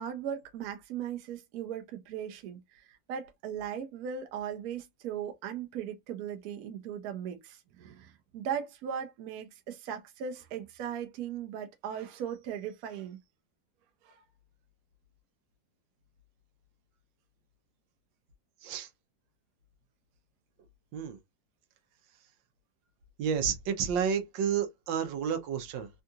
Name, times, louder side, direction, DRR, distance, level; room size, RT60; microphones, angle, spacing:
voice 1, 0.0-13.2 14.0-14.2, right 8 dB, 65° right, 1.0 m, -38 dB
voice 2, 23.2-25.9, right 7 dB, 85° right, 1.4 m, -30 dB
3.6 x 2.3 x 2.7 m
omnidirectional pair, 2.0 m